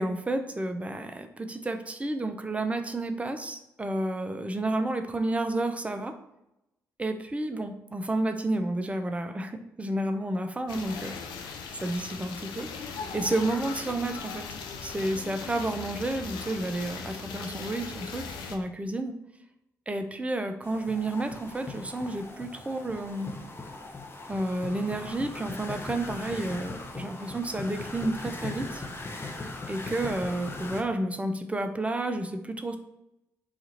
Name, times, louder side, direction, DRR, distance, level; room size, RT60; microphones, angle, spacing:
voice 1, 0.0-6.1 7.0-11.2 11.8-14.5 14.8-19.2 19.9-23.3 24.3-28.8 29.7-32.8, right 2 dB, 15° right, 6 dB, 0.5 m, -31 dB
sound 1, 10.7-18.6, left 5 dB, 75° left, 0.4 m, -39 dB
sound 2, 20.6-30.8, left 3 dB, 30° left, 0.6 m, -39 dB
2.9 x 2.4 x 3.9 m, 0.88 s
hypercardioid pair, 40°, 8 cm